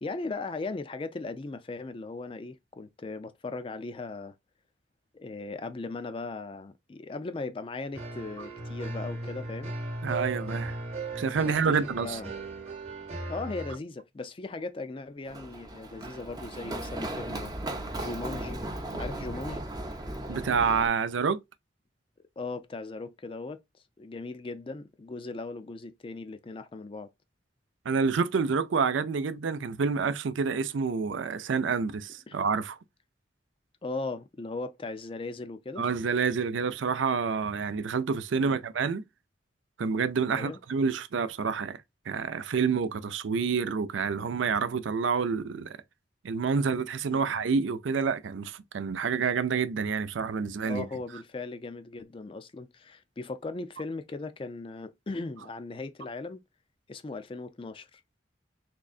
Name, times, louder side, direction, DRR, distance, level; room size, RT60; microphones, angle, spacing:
voice 1, 0.0-4.3 5.1-9.7 11.4-12.3 13.3-17.5 18.0-18.6 19.0-19.6 22.4-23.6 24.0-27.1 32.3-32.4 33.8-35.9 38.4-38.6 40.3-40.6 47.1-47.3 50.6-56.4 56.9-58.2, left 3 dB, 30° left, 0.3 m, -38 dB
sound 1, 7.9-13.8, right 2 dB, 35° right, 1.0 m, -37 dB
voice 2, 10.0-10.8 11.2-12.2 20.3-21.4 27.9-32.8 35.8-39.0 39.8-41.8 42.1-45.8 46.2-50.9, right 5 dB, 85° right, 0.5 m, -28 dB
Run, 15.3-20.9, right 1 dB, 20° right, 0.6 m, -36 dB
3.7 x 3.2 x 2.4 m
head